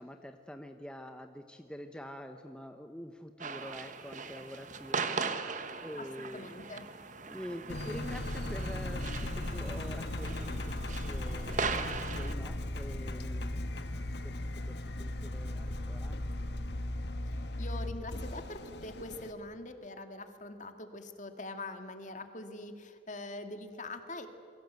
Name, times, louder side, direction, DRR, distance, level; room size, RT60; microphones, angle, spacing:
voice 1, 0.0-5.3 5.8-6.5 7.3-13.7 14.2-16.2, equal, 5° left, 5 dB, 0.9 m, -46 dB
sound 1, 3.4-12.3, right 4 dB, 40° right, 1.3 m, -39 dB
voice 2, 6.0-6.9 17.6-24.3, left 2 dB, 40° left, 7 dB, 2.1 m, -43 dB
Engine, 7.7-19.3, left 1 dB, 60° left, 1.4 m, -37 dB
28.5 x 22.5 x 8.2 m, 2.4 s
head